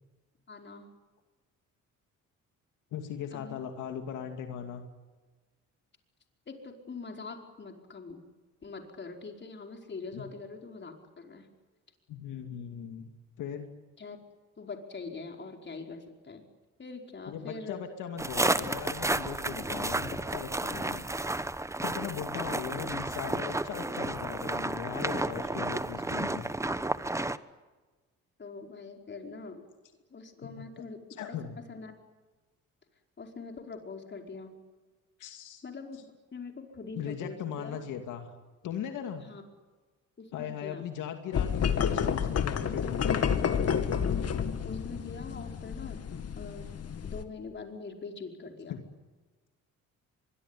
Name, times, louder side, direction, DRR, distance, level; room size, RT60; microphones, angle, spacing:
voice 1, 0.5-0.9 3.3-3.6 6.5-8.2 8.6-11.5 14.0-14.2 14.6-16.4 16.8-17.8 28.4-29.6 30.1-31.0 31.3-31.4 31.7-32.0 33.2-34.6 35.6-36.1 36.3-37.8 39.2-39.4 40.2-40.9 44.6-46.0 46.4-46.7 47.0-48.8, left 4 dB, 35° left, 3 dB, 5.0 m, -43 dB
voice 2, 2.9-4.8 10.1-10.2 12.1-13.1 13.4-13.7 17.3-21.1 21.8-26.5 30.6-30.7 31.2-31.6 35.2-35.6 36.9-38.3 38.6-39.3 40.3-43.3 48.7-48.8, left 8 dB, 85° left, 5 dB, 2.6 m, -38 dB
sound 1, 18.2-27.4, right 2 dB, 10° right, 1.1 m, -32 dB
sound 2, 41.3-47.2, left 7 dB, 55° left, 2.2 m, -30 dB
24.5 x 22.5 x 9.9 m, 1.3 s
cardioid pair, 90°, 30 cm